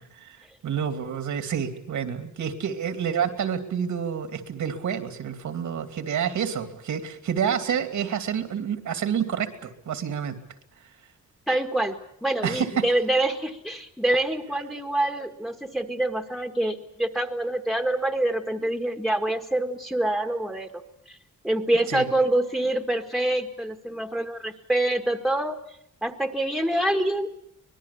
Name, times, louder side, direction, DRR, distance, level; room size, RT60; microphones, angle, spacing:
voice 1, 0.0-10.4 10.8-10.9 12.4-12.9 21.9-22.0, right 8 dB, 75° right, 8 dB, 2.7 m, -28 dB
voice 2, 11.5-12.0 12.2-20.8 21.1-21.2 21.4-25.6 26.0-27.3, right 1 dB, ahead, 7 dB, 1.8 m, -26 dB
24.5 x 20.5 x 8.5 m, 0.72 s
wide cardioid pair, 150°, 30 cm